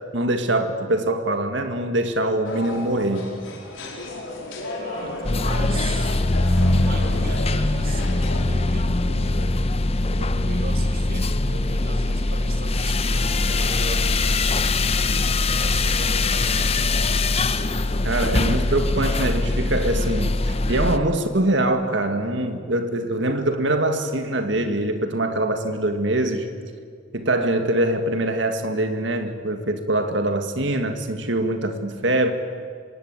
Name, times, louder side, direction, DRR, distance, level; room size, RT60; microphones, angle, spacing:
voice 1, 0.1-3.4 5.6-5.8 18.0-26.5 27.1-32.3, right 1 dB, 65° right, 7 dB, 2.0 m, -23 dB
sound 1, 2.4-8.4, left 2 dB, 75° left, 4.9 m, -34 dB
voice 2, 4.8-6.2 6.9-9.6 10.1-14.8 15.6-16.9, right 3 dB, 45° right, 4 dB, 2.8 m, -38 dB
sound 2, 5.2-21.0, left 2 dB, 30° left, 0.8 m, -22 dB
26.0 x 20.0 x 9.0 m, 2.1 s
head